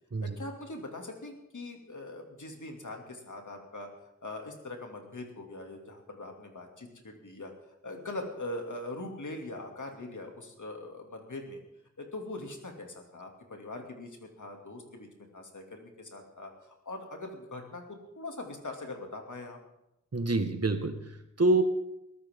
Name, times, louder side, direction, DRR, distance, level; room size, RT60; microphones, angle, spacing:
voice 1, 0.2-3.9 4.2-7.5 7.8-11.6 12.0-15.1 15.3-19.6, left 2 dB, 75° left, 2 dB, 2.6 m, -42 dB
voice 2, 20.1-21.6, right 2 dB, 55° right, 7 dB, 1.6 m, -27 dB
22.0 x 13.5 x 3.7 m, 0.86 s
wide cardioid pair, 50°, 30 cm